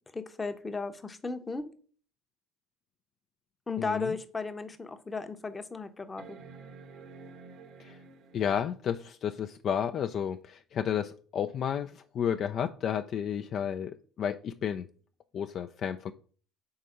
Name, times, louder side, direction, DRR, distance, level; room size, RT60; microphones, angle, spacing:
voice 1, 0.1-1.7 3.7-6.4, left 4 dB, 20° left, 9 dB, 0.8 m, -35 dB
voice 2, 3.8-4.2 7.8-8.0 8.3-14.9 15.3-16.1, left 8 dB, 50° left, 7 dB, 0.3 m, -32 dB
sound 1, 4.0-4.1 4.7-4.8 6.2-8.7 10.4-10.5, right 4 dB, 55° right, 0.9 m, -50 dB
4.7 x 4.2 x 5.6 m, 0.43 s
hypercardioid pair, 60°, 0 cm